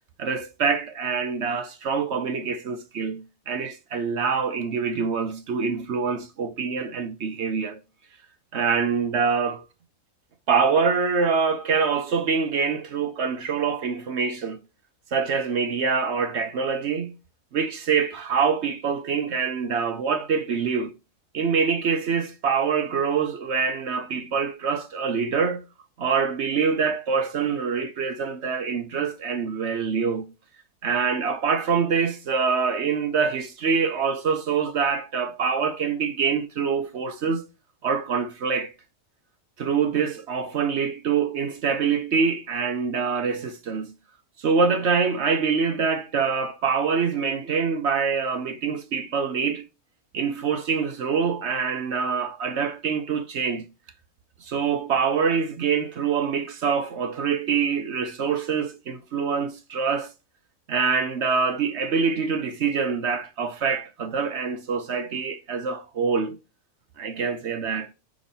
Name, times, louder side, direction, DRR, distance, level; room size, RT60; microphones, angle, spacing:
voice 1, 0.2-7.8 8.5-9.6 10.5-14.6 15.1-17.2 17.5-20.9 21.3-25.6 26.0-30.3 30.8-37.5 37.8-38.7 39.6-43.9 44.4-49.7 50.1-53.7 54.4-60.1 60.7-66.4 67.0-67.9, right 5 dB, 60° right, 0.8 m, -25 dB
6.1 x 3.8 x 4.0 m
omnidirectional pair, 1.6 m